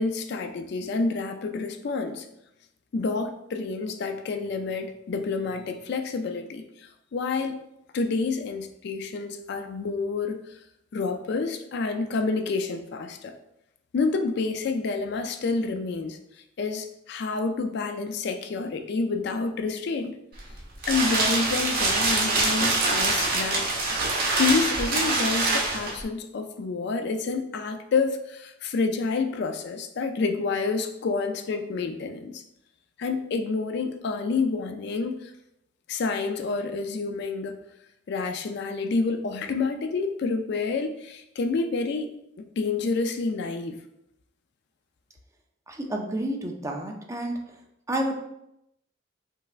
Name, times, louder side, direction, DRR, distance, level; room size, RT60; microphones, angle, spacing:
voice 1, 0.0-2.3 2.9-7.6 7.9-10.6 10.9-13.3 13.9-16.2 16.6-20.2 20.9-32.4 33.0-35.3 35.9-37.6 38.1-42.1 42.6-43.8, left 4 dB, 60° left, 7 dB, 0.4 m, -28 dB
sound 1, 20.3-26.0, right 3 dB, 50° right, 1.0 m, -24 dB
voice 2, 45.7-47.4 47.9-48.1, right 1 dB, 15° right, 2 dB, 0.5 m, -30 dB
5.4 x 3.2 x 2.4 m, 0.82 s
head